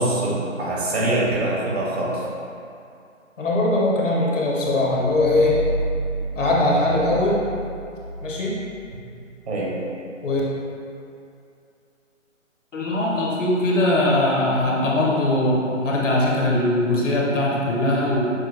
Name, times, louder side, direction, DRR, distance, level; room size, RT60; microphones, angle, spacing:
voice 1, 0.0-2.2 9.5-9.8, right 1 dB, 50° right, -5 dB, 1.1 m, -23 dB
voice 2, 3.4-5.6 6.3-7.4 8.2-8.6 10.2-10.4 12.7-18.3, left 1 dB, 65° left, -3 dB, 1.0 m, -21 dB
sound 1, 4.8-9.3, right 2 dB, 25° right, 0.4 m, -30 dB
6.3 x 2.6 x 2.5 m, 2.5 s
figure-of-eight pair, 155°, 40 cm